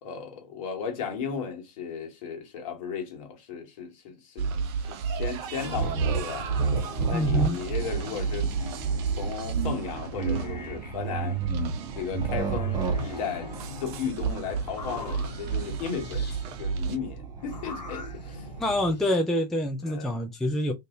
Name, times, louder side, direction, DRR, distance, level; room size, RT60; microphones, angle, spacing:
voice 1, 0.0-4.5 4.8-6.5 7.1-8.5 9.1-11.4 11.9-13.5 13.8-18.5 19.8-20.2, left 6 dB, 55° left, 1.4 m, -35 dB
sound 1, 4.4-17.0, right 6 dB, 40° right, 0.6 m, -33 dB
sound 2, 5.6-7.5 7.7-9.5 9.8-11.8 12.4-14.1 14.6-16.4 17.4-19.2, left 4 dB, 90° left, 1.0 m, -43 dB
sound 3, 5.7-18.9, right 5 dB, 20° right, 0.9 m, -33 dB
voice 2, 7.1-7.6 18.6-20.7, left 1 dB, ahead, 0.3 m, -26 dB
2.8 x 2.6 x 3.6 m
hypercardioid pair, 110°, 21 cm